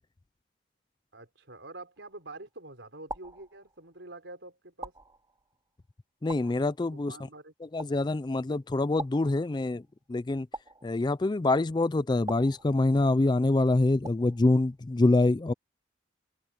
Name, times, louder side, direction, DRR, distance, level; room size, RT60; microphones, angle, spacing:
voice 1, 1.1-4.9 6.9-7.5, right 2 dB, 70° right, 4.8 m, -46 dB
sound 1, 2.0-2.4 3.1-4.1 4.8-5.7 6.3-7.1 7.8-8.4 9.0-9.9 10.5-11.4 12.3-13.2 14.0-14.6, right 2 dB, 20° right, 2.8 m, -44 dB
voice 2, 6.2-7.1 7.7-9.8 10.1-10.5 10.8-15.5, left 2 dB, 25° left, 0.4 m, -25 dB
head